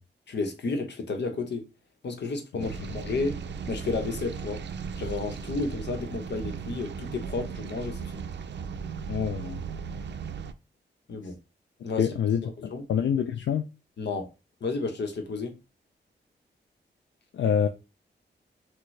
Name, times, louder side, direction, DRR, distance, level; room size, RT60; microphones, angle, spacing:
voice 1, 0.3-1.7 2.0-3.4 3.7-4.6 5.0-8.3 11.1-11.4 11.8-12.1 12.4-12.8 14.0-14.3 14.6-15.6, left 3 dB, 70° left, 1.0 m, -32 dB
sound 1, 2.6-10.5, right 6 dB, 70° right, 0.5 m, -36 dB
voice 2, 9.1-9.6 12.0-12.4 12.9-13.6 17.3-17.7, left 8 dB, 85° left, 0.5 m, -26 dB
6.2 x 2.3 x 3.2 m
wide cardioid pair, 110°, 19 cm